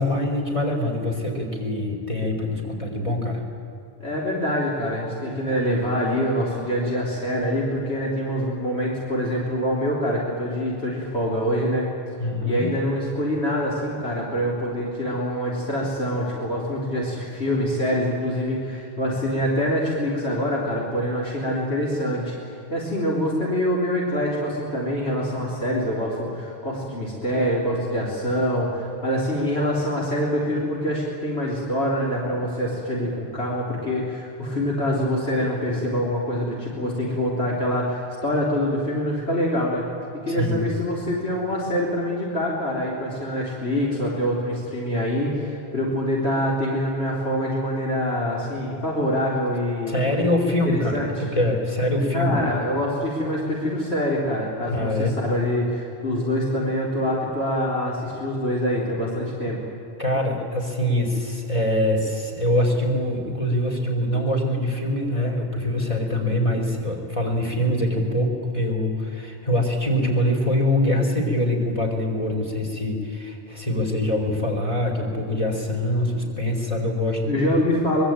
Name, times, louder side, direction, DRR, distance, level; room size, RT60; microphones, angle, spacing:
voice 1, 0.0-3.4 12.2-12.7 40.3-40.7 49.9-52.4 54.7-55.1 60.0-77.4, left 1 dB, 30° left, 0 dB, 4.5 m, -24 dB
voice 2, 4.0-11.9 12.5-39.9 40.2-50.0 50.6-51.1 52.1-59.6 77.3-78.0, equal, 80° left, -4 dB, 4.1 m, -25 dB
24.0 x 21.5 x 9.0 m, 2.8 s
omnidirectional pair, 1.1 m